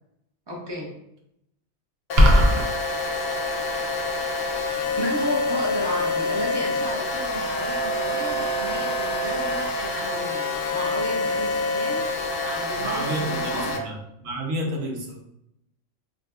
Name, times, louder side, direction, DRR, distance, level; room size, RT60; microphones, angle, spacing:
voice 1, 0.5-0.9 4.6-12.0 12.4-13.8, equal, 30° right, -3 dB, 0.4 m, -33 dB
sound 1, 2.1-13.8, left 2 dB, 65° left, 0.7 m, -27 dB
sound 2, 2.2-2.6, equal, 60° right, 0.8 m, -15 dB
voice 2, 12.8-15.2, right 1 dB, 80° right, 0 dB, 1.1 m, -30 dB
3.9 x 2.6 x 2.2 m, 0.80 s
omnidirectional pair, 1.4 m